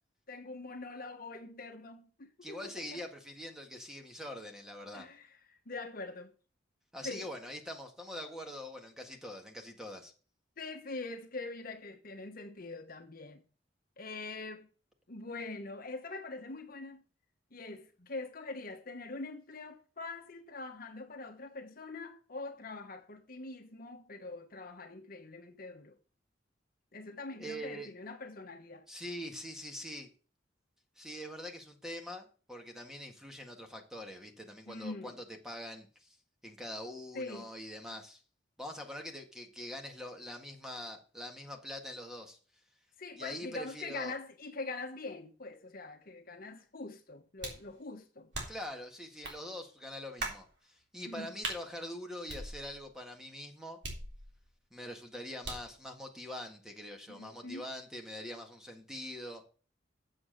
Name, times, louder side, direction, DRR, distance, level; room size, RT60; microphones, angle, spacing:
voice 1, 0.3-3.0 4.9-6.3 7.0-7.3 10.6-13.4 14.0-14.7 15.1-17.0 17.5-25.9 26.9-28.9 34.7-35.2 37.1-37.5 43.0-48.3 51.0-51.3 57.1-57.7, left 3 dB, 50° left, 1.3 m, -43 dB
voice 2, 2.4-5.1 6.9-10.1 27.4-27.9 28.9-30.1 31.0-35.1 35.4-36.2 36.4-38.2 38.6-42.4 43.2-44.2 48.5-53.8 54.7-59.4, left 1 dB, 5° right, 1.8 m, -44 dB
sound 1, 47.4-47.7 48.3-48.7 49.2-49.4 50.2-50.5 51.4-51.6 52.3-52.9 53.8-54.5 55.4-55.8, right 2 dB, 70° right, 3.5 m, -40 dB
7.8 x 7.7 x 6.7 m
head